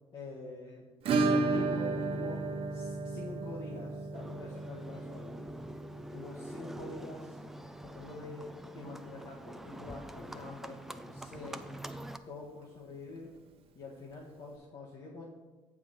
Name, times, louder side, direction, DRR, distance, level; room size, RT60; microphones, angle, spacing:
voice 1, 0.1-1.0 1.3-5.4 6.1-7.4 7.8-11.6 12.3-13.3 13.7-15.3, left 3 dB, 55° left, -4 dB, 1.4 m, -46 dB
Acoustic guitar / Strum, 1.0-9.7 9.9-10.0 10.3-10.4 10.8-10.9 12.9-13.0 14.1-14.2, right 3 dB, 60° right, 0.8 m, -34 dB
Livestock farm animals working animals, 4.1-12.2, right 1 dB, 5° right, 0.5 m, -46 dB
7.0 x 4.9 x 6.2 m, 1.3 s
supercardioid pair, 70°, 11 cm